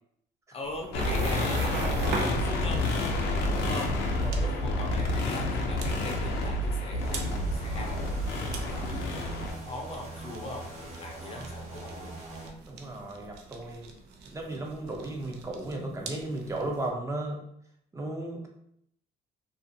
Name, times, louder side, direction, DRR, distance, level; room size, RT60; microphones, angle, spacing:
voice 1, 0.5-2.9 3.4-3.9 4.3-8.1 8.6-12.1, left 2 dB, 35° left, 2 dB, 0.7 m, -40 dB
sound 1, 0.6-16.9, right 4 dB, 80° right, 0.5 m, -42 dB
sound 2, 0.9-9.5, left 1 dB, 80° left, 0.6 m, -29 dB
voice 2, 4.2-4.6 12.7-13.9 14.2-17.4 17.9-18.5, right 2 dB, 15° right, 0 dB, 0.6 m, -35 dB
sound 3, 7.0-12.5, right 2 dB, 40° right, 0.9 m, -42 dB
2.5 x 2.4 x 2.7 m, 0.70 s
cardioid pair, 110°, 17 cm